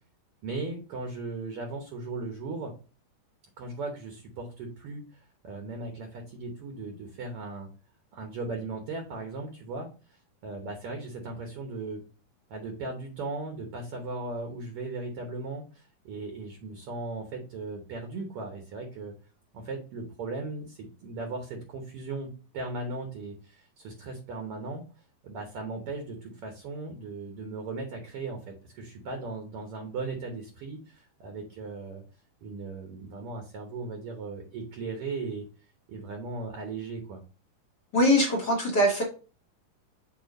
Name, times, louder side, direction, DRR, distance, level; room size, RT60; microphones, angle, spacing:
voice 1, 0.4-2.7 3.6-7.7 8.1-9.9 10.4-12.0 12.5-19.1 19.5-24.8 25.2-32.0 32.4-35.5 35.9-37.2, right 3 dB, 65° right, 3 dB, 1.5 m, -37 dB
voice 2, 37.9-39.0, equal, 55° left, -2 dB, 1.1 m, -22 dB
6.9 x 2.8 x 5.2 m, 0.35 s
omnidirectional pair, 3.9 m